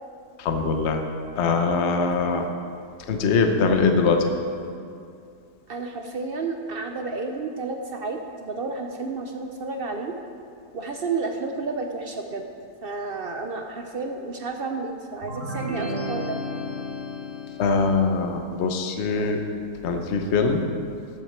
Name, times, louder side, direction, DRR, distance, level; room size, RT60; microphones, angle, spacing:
voice 1, 0.4-1.0 1.4-2.5 3.1-4.3 17.6-19.4 19.8-20.6, left 4 dB, 50° left, 5 dB, 1.0 m, -22 dB
voice 2, 5.7-10.2 10.7-12.5 12.8-16.4, right 3 dB, 60° right, 4 dB, 0.6 m, -31 dB
sound 1, 15.2-18.0, left 1 dB, 40° right, 1.9 m, -32 dB
14.0 x 8.1 x 4.4 m, 2.5 s
omnidirectional pair, 1.7 m